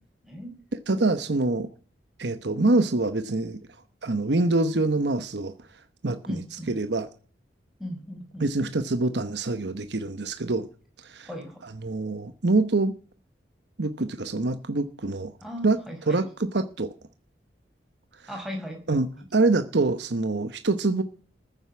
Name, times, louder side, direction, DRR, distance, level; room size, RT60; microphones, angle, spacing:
voice 1, 0.9-1.7 2.2-3.6 4.0-5.5 6.0-7.1 8.4-10.7 11.0-11.3 11.6-12.9 13.8-15.3 15.6-15.8 16.1-16.9 18.9-21.0, right 2 dB, 75° right, 1.0 m, -25 dB
voice 2, 6.3-6.8 7.8-8.8 11.2-11.6 15.4-16.3 18.3-18.8 19.2-19.3, equal, ahead, 5.0 m, -37 dB
14.5 x 7.9 x 9.5 m
head